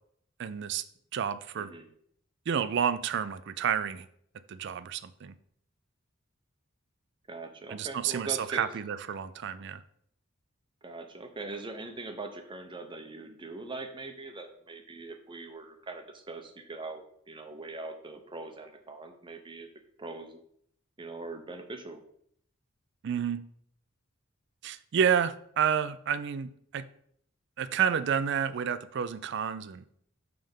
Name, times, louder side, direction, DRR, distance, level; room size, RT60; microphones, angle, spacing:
voice 1, 0.4-0.8 1.1-1.7 2.5-4.1 4.5-5.3 7.7-9.8 23.0-23.4 24.6-26.9 27.6-29.8, right 8 dB, 60° right, 15 dB, 0.4 m, -30 dB
voice 2, 1.6-1.9 7.3-8.7 10.8-19.7 20.0-20.4 21.0-22.0, right 3 dB, 25° right, 6 dB, 0.7 m, -41 dB
5.4 x 3.4 x 5.4 m, 0.66 s
head